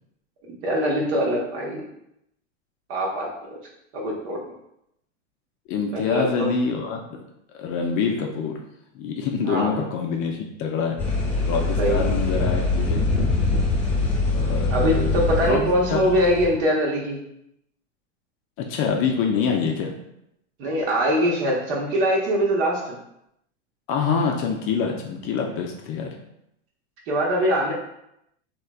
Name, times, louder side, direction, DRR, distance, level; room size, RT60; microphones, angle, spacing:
voice 1, 0.6-1.9 2.9-3.6 3.9-4.4 5.9-6.5 9.5-9.8 11.8-12.0 14.7-17.2 20.6-23.0 27.1-27.7, equal, 60° right, -2 dB, 1.2 m, -23 dB
voice 2, 5.7-7.2 7.5-8.5 8.9-11.0 11.4-13.1 14.3-16.1 18.7-19.9 23.9-26.1, left 6 dB, 35° left, 2 dB, 0.4 m, -26 dB
sound 1, 11.0-16.5, left 3 dB, 5° left, 0.8 m, -23 dB
3.2 x 2.8 x 2.3 m, 0.80 s
hypercardioid pair, 110°, 38 cm